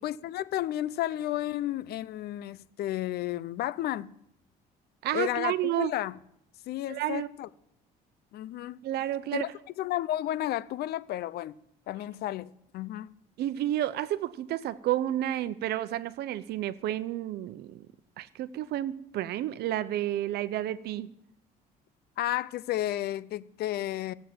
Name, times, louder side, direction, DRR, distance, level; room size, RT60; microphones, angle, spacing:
voice 1, 0.0-4.2 5.1-6.2 6.7-7.5 8.3-8.8 9.3-9.5 9.8-11.5 11.9-13.1 22.2-24.1, left 14 dB, 70° left, 0.6 m, -32 dB
voice 2, 5.0-5.9 6.9-7.3 8.8-9.5 13.4-17.9 18.2-21.1, right 13 dB, 75° right, 0.8 m, -31 dB
16.0 x 8.2 x 7.7 m
cardioid pair, 110°, 17 cm